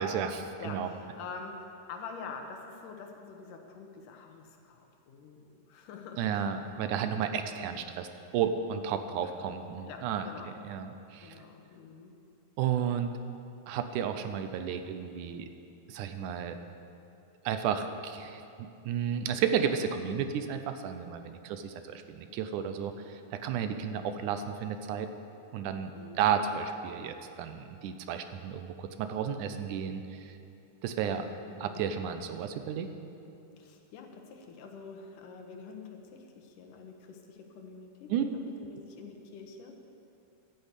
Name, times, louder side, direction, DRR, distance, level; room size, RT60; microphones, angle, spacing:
voice 1, 0.0-0.9 6.2-8.1 8.3-10.3 10.6-11.4 12.6-13.1 13.7-15.5 15.9-16.6 17.5-25.1 25.5-25.9 26.2-30.3 30.8-31.3 31.6-32.9 38.1-38.3, right 8 dB, 75° right, 8 dB, 2.1 m, -32 dB
voice 2, 0.6-6.6 6.9-7.0 7.3-7.6 9.2-9.5 9.9-10.6 11.2-12.1 12.7-12.8 22.4-22.5 23.8-24.0 25.9-26.3 31.5-31.8 32.3-32.4 32.8-32.9 33.6-39.7, left 5 dB, 75° left, 3 dB, 2.6 m, -46 dB
12.0 x 9.1 x 8.2 m, 2.6 s
omnidirectional pair, 3.8 m